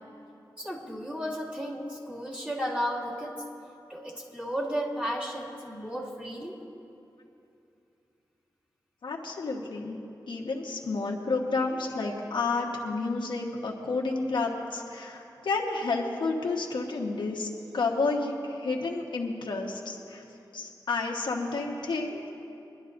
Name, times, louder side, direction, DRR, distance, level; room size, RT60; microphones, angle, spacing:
voice 1, 0.6-3.4 3.9-6.6, equal, 15° right, -6 dB, 2.3 m, -34 dB
voice 2, 9.0-10.0 10.3-17.5 17.7-20.2 20.5-22.3, left 3 dB, 85° left, -1 dB, 1.3 m, -30 dB
22.5 x 11.5 x 2.6 m, 2.7 s
wide cardioid pair, 110°, 8 cm